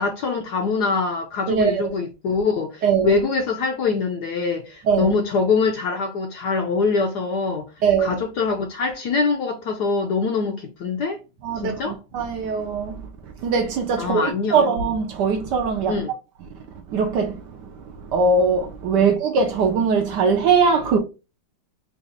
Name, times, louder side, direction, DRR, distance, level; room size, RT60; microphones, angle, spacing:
voice 1, 0.0-7.7 8.0-11.2 11.6-12.0 14.0-14.6 15.9-16.1 19.0-19.1, left 4 dB, 70° left, 1.0 m, -24 dB
voice 2, 1.5-1.9 2.8-3.2 4.8-5.1 7.8-8.2 11.4-16.0 16.9-21.0, right 5 dB, 70° right, 1.1 m, -21 dB
4.0 x 2.4 x 3.8 m
omnidirectional pair, 2.2 m